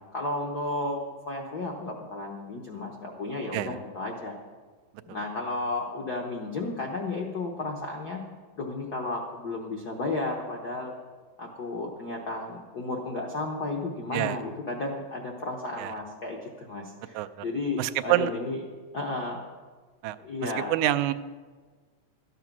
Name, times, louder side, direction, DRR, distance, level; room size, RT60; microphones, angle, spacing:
voice 1, 0.1-4.3 5.1-8.2 8.6-10.9 11.4-18.6 18.9-19.4 20.2-20.8, left 2 dB, 70° left, 0 dB, 0.9 m, -33 dB
voice 2, 17.1-17.5 17.8-18.3 20.0-20.2 20.4-21.1, right 15 dB, 90° right, 11 dB, 2.0 m, -27 dB
13.0 x 9.2 x 6.0 m, 1.4 s
omnidirectional pair, 3.3 m